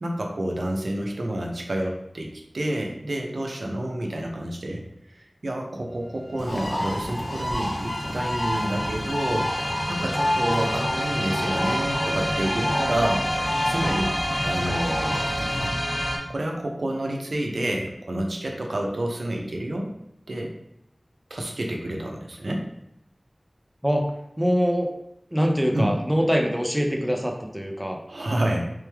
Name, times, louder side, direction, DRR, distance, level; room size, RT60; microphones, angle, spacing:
voice 1, 0.0-4.8 5.1-13.2 13.7-14.1 14.4-15.2 15.6-15.7 16.3-19.9 20.3-20.5 21.3-22.6 25.7-25.9 28.1-28.7, right 1 dB, 85° right, 0 dB, 0.6 m, -29 dB
sound 1, 5.9-6.0 6.2-16.2, equal, 15° left, 1.0 m, -29 dB
Bird, 6.4-15.7, left 1 dB, 60° left, 0.7 m, -29 dB
voice 2, 24.4-24.9 25.3-28.0, equal, 5° right, 1 dB, 0.6 m, -23 dB
3.4 x 3.2 x 3.4 m, 0.80 s
wide cardioid pair, 55°, 0 cm